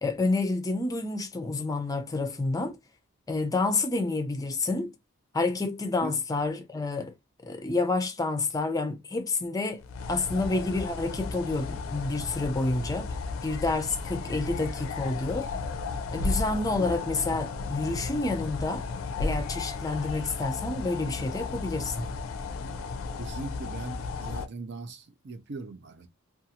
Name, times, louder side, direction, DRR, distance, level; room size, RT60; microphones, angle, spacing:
voice 1, 0.0-2.8 3.3-4.9 5.3-7.1 7.4-9.8 10.1-13.1 13.4-15.5 16.1-18.8 19.2-22.1, left 3 dB, 15° left, 0.5 m, -29 dB
sound 1, 9.8-24.5, left 4 dB, 80° left, 0.4 m, -34 dB
voice 2, 23.2-26.1, right 3 dB, 55° right, 0.5 m, -40 dB
2.6 x 2.3 x 2.8 m
head